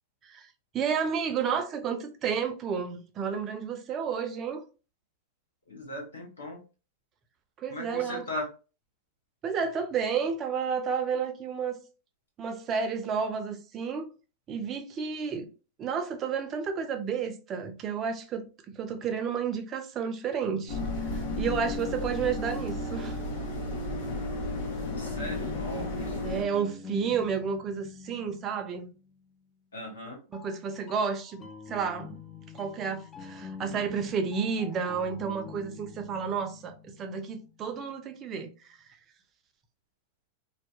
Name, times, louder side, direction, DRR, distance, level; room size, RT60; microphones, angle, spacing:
voice 1, 0.7-4.6 7.6-8.2 9.4-11.8 12.4-14.1 14.5-15.5 15.8-20.8 21.1-23.2 26.2-28.9 30.3-32.2 32.5-38.5, right 6 dB, 35° right, 0.5 m, -31 dB
voice 2, 5.7-6.6 7.7-8.5 24.8-26.4 29.7-30.2, left 1 dB, 90° left, 1.1 m, -38 dB
sound 1, 20.5-23.6 24.9-29.5 30.3-38.0, left 4 dB, 25° left, 0.5 m, -47 dB
sound 2, 20.7-26.4, left 2 dB, 65° left, 1.0 m, -33 dB
2.7 x 2.1 x 2.3 m
hypercardioid pair, 100°, 0 cm